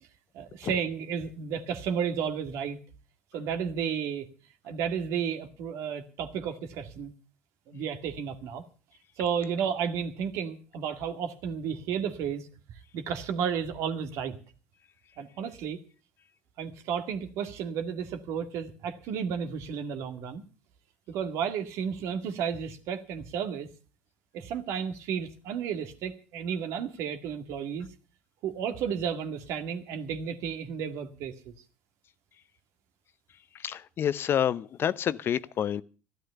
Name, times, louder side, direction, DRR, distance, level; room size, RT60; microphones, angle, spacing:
voice 1, 0.3-2.8 3.3-4.3 4.6-7.1 7.7-8.6 9.2-12.5 12.9-14.4 15.2-15.8 16.6-20.4 21.1-23.7 24.3-27.9 28.4-31.5, right 7 dB, 65° right, 1.9 m, -32 dB
voice 2, 33.6-35.8, left 9 dB, 45° left, 0.7 m, -28 dB
13.0 x 12.0 x 6.8 m
hypercardioid pair, 70°, 5 cm